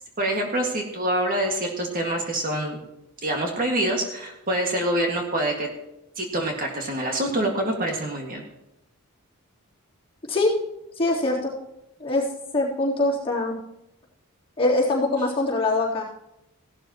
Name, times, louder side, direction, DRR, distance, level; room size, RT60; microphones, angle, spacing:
voice 1, 0.2-2.8 3.2-5.7 6.2-8.4, right 1 dB, 40° right, 1 dB, 1.9 m, -26 dB
voice 2, 11.0-11.5 12.0-12.3 12.5-13.5 14.6-16.0, left 2 dB, 25° left, -7 dB, 3.5 m, -23 dB
17.0 x 12.0 x 3.0 m, 0.89 s
head